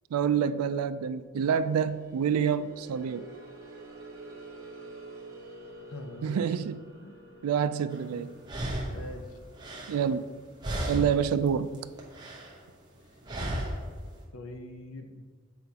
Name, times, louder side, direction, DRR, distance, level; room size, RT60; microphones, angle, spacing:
voice 1, 0.1-3.3 6.2-6.8 7.4-8.3 9.9-10.2 10.9-11.8, right 7 dB, 90° right, 14 dB, 0.3 m, -27 dB
sound 1, 1.6-10.5, right 2 dB, 60° right, 1.0 m, -49 dB
voice 2, 5.9-6.5 7.0-7.2 8.1-8.3 8.9-9.3 14.3-15.2, left 1 dB, 80° left, 5 dB, 0.7 m, -43 dB
sound 2, 7.9-8.0 8.4-10.4 10.6-11.3 11.6-12.6 13.3-13.9, right 1 dB, 20° right, 0.8 m, -34 dB
7.5 x 5.8 x 2.8 m, 1.5 s
head